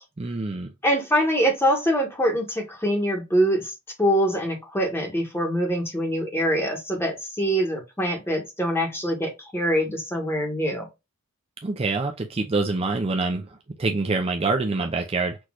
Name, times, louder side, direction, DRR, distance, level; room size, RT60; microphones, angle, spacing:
voice 1, 0.2-0.7 11.6-15.4, right 3 dB, 25° right, 0.5 m, -26 dB
voice 2, 0.8-3.7 4.0-10.9, equal, 10° left, 1.6 m, -24 dB
6.2 x 3.1 x 2.4 m
head